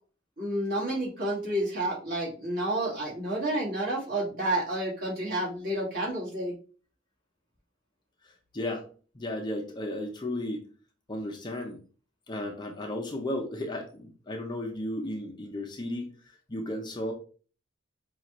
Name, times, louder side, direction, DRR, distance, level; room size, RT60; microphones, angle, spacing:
voice 1, 0.4-6.5, right 1 dB, 50° right, -5 dB, 2.0 m, -30 dB
voice 2, 8.5-8.9 9.1-10.7 11.1-11.8 12.3-16.1 16.5-17.1, left 1 dB, 20° left, 2 dB, 0.5 m, -34 dB
4.9 x 2.4 x 3.0 m, 0.40 s
head